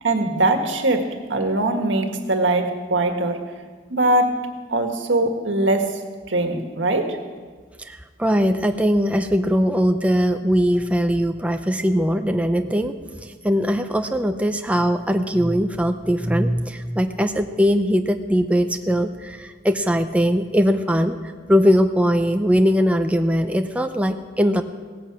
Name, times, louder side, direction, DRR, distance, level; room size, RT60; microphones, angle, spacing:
voice 1, 0.0-1.0 1.3-3.4 3.9-4.4 4.7-5.9 6.3-7.2, right 2 dB, 80° right, 5 dB, 1.7 m, -21 dB
voice 2, 7.8-12.9 13.2-21.2 21.5-24.6, equal, 5° right, 6 dB, 0.6 m, -20 dB
17.0 x 10.5 x 7.4 m, 1.5 s
head